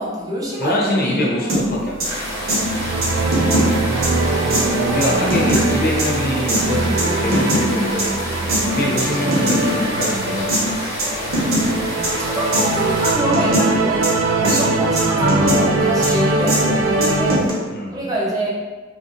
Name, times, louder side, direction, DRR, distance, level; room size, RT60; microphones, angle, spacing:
voice 1, 0.0-1.6 4.7-5.7 12.0-17.6 17.9-18.5, right 1 dB, 20° right, -6 dB, 0.7 m, -25 dB
voice 2, 0.6-2.1 4.8-8.1 8.6-10.6 14.4-15.0 15.9-16.9 17.7-18.0, left 1 dB, 50° left, -2 dB, 0.5 m, -24 dB
sound 1, 1.5-1.6 2.0-2.1 2.5-2.6 3.0-3.7 4.0-4.1 4.5-4.6 5.0-5.6 6.0-6.1 6.5-6.6 7.0-7.6 8.0-8.1 8.5-8.6 9.0-9.6 10.0-10.1 10.5-10.6 11.0-11.1 11.3-11.6 12.0-12.1 12.5-12.6 13.0-13.6 14.0-14.1 14.4-14.6 15.0-15.6 16.0-16.1 16.5-16.6 17.0-17.5, right 1 dB, 50° right, 0.9 m, -20 dB
sound 2, 2.0-13.1, equal, 15° left, 0.8 m, -29 dB
sound 3, 2.0-17.4, right 2 dB, 85° right, 0.4 m, -22 dB
2.5 x 2.4 x 3.6 m, 1.3 s
head